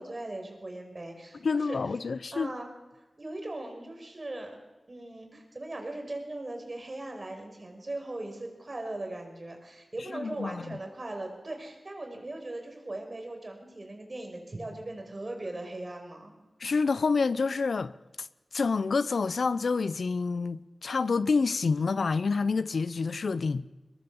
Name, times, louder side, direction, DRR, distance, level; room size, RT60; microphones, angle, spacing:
voice 1, 0.0-1.8 2.3-2.7 3.2-4.6 4.9-16.4, right 2 dB, 40° right, 5.7 m, -39 dB
voice 2, 1.4-2.5 10.1-10.8 16.6-17.9 18.2-18.3 18.5-23.6, left 4 dB, 75° left, 0.7 m, -28 dB
22.5 x 19.5 x 7.2 m
wide cardioid pair, 70°, 0 cm